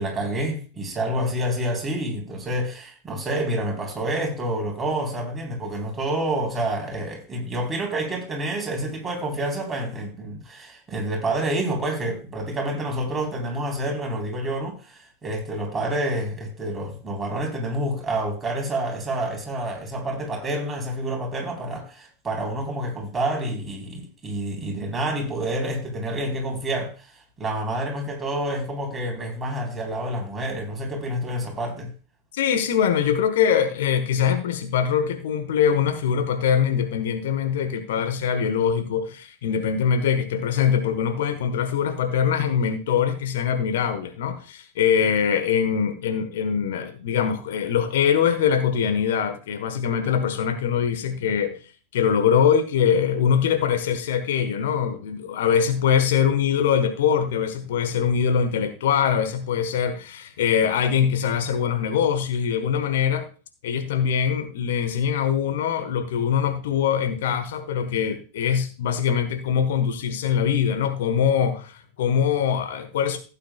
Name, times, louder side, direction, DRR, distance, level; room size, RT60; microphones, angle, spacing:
voice 1, 0.0-27.1 27.4-31.9, right 1 dB, 15° right, 3.9 m, -28 dB
voice 2, 32.3-51.6 51.9-63.3 63.6-73.2, left 8 dB, 55° left, 1.3 m, -23 dB
16.0 x 9.0 x 2.3 m
figure-of-eight pair, 90°, 0 cm